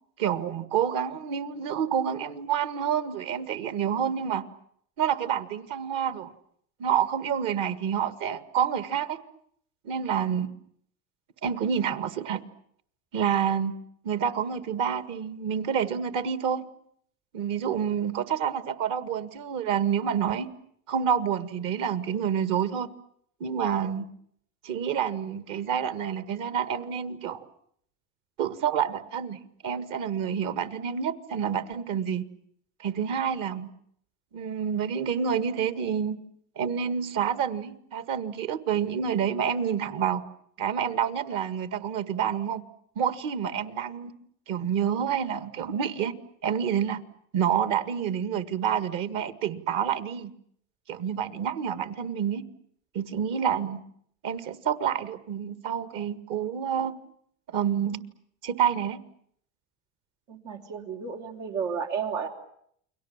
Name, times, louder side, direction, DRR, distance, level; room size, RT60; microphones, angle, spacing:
voice 1, 0.2-4.5 5.0-6.3 6.8-9.2 9.8-10.5 11.4-12.4 13.1-13.8 14.0-16.6 17.3-20.5 20.9-22.9 23.4-24.1 24.6-27.5 28.4-29.4 29.6-32.2 32.8-33.7 34.3-36.2 36.6-40.2 40.6-42.6 43.0-44.1 44.5-46.1 46.4-47.0 47.3-50.3 50.9-52.4 52.9-53.8 54.2-56.9 57.5-58.0 58.4-59.0, right 8 dB, 55° right, 12 dB, 1.9 m, -28 dB
voice 2, 60.3-62.3, right 6 dB, 85° right, 2 dB, 4.1 m, -32 dB
29.5 x 23.0 x 7.3 m, 0.67 s
supercardioid pair, 110°, 37 cm